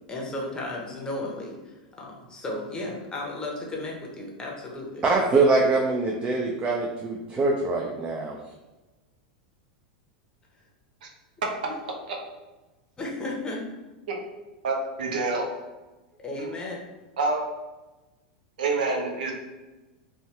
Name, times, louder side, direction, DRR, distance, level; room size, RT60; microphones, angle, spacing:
voice 1, 0.1-5.0 11.7-11.8 13.0-13.6 16.2-16.8, left 2 dB, 15° left, -2 dB, 0.8 m, -34 dB
voice 2, 5.0-8.4, right 3 dB, 25° right, 0 dB, 0.4 m, -23 dB
voice 3, 14.6-15.5 17.2-17.4 18.6-19.3, right 3 dB, 75° right, 0 dB, 0.6 m, -27 dB
2.7 x 2.2 x 3.2 m, 1.1 s
hypercardioid pair, 95°, 5 cm